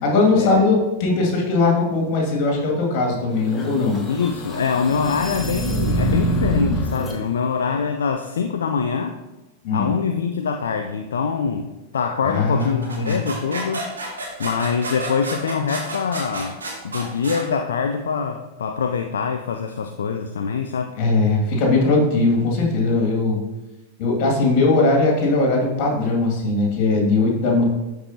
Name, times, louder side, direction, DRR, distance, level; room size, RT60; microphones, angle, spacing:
voice 1, 0.0-4.0 9.6-9.9 12.2-13.2 21.0-23.4 24.0-27.6, left 3 dB, 45° left, -1 dB, 2.1 m, -19 dB
sound 1, 3.4-7.2, equal, 20° left, 1.5 m, -24 dB
voice 2, 4.1-9.2 9.7-13.9 14.4-16.6 16.8-21.0, left 6 dB, 65° left, 5 dB, 0.4 m, -24 dB
sound 2, 12.6-17.4, right 2 dB, 75° right, 2.1 m, -31 dB
12.5 x 4.7 x 2.8 m, 1.0 s
figure-of-eight pair, 90°, 0 cm